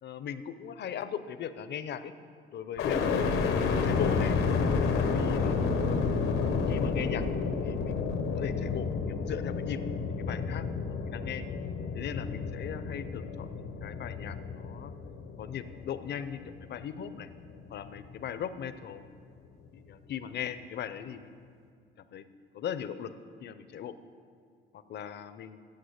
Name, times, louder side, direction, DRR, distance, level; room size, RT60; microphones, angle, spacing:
voice 1, 0.0-2.1 2.5-3.4 3.8-4.3 5.0-5.6 6.7-7.3 7.6-8.0 8.4-9.8 10.2-11.5 11.9-14.9 15.4-17.3 17.7-19.0 19.7-21.3 22.1-22.3 22.5-23.1 23.4-23.9 24.7-25.6, left 8 dB, 60° left, 12 dB, 0.6 m, -39 dB
sound 1, 2.8-16.8 17.3-18.0, left 5 dB, 90° left, 1.0 m, -30 dB
8.7 x 7.7 x 8.0 m, 2.2 s
cardioid pair, 90°, 20 cm